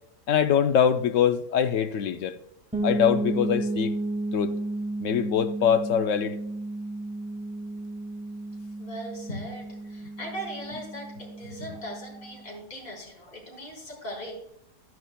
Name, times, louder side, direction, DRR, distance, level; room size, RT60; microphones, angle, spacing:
voice 1, 0.3-2.4 2.8-4.0 4.3-4.6 5.0-6.4, left 8 dB, 70° left, 0.7 m, -23 dB
sound 1, 2.7-12.4, right 2 dB, 5° right, 1.6 m, -33 dB
voice 2, 8.8-14.3, equal, 35° left, 4.4 m, -39 dB
12.5 x 11.0 x 2.2 m
omnidirectional pair, 1.8 m